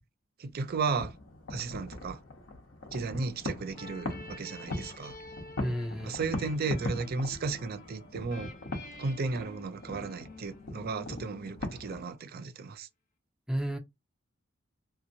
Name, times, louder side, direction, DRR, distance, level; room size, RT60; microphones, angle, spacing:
voice 1, 0.4-1.1 1.5-2.2 2.9-5.2 6.0-8.5 9.0-12.9, right 4 dB, 50° right, 0.4 m, -34 dB
sound 1, 0.6-12.1, left 2 dB, 70° left, 1.0 m, -41 dB
sound 2, 3.7-12.2, left 2 dB, 40° left, 1.1 m, -50 dB
voice 2, 5.6-6.2 13.5-13.8, equal, 5° right, 0.6 m, -32 dB
2.8 x 2.6 x 2.6 m
head